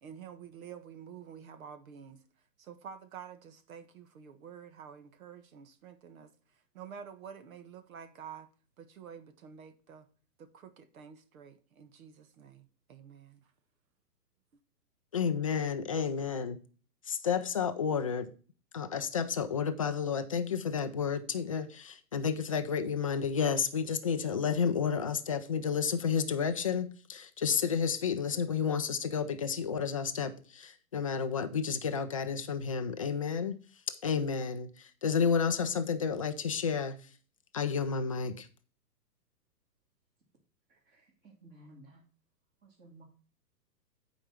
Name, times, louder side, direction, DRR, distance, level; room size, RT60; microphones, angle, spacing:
voice 1, 0.0-2.2 2.6-6.3 6.7-8.5 8.8-10.1 10.4-13.5, right 7 dB, 55° right, 1.5 m, -49 dB
voice 2, 15.1-16.6 17.0-18.3 18.7-33.6 33.9-37.1 37.5-38.5, left 6 dB, 25° left, 0.4 m, -31 dB
voice 3, 40.7-42.0 42.6-43.0, right 1 dB, 20° right, 2.1 m, -56 dB
8.8 x 5.0 x 5.7 m
hypercardioid pair, 140°, 49 cm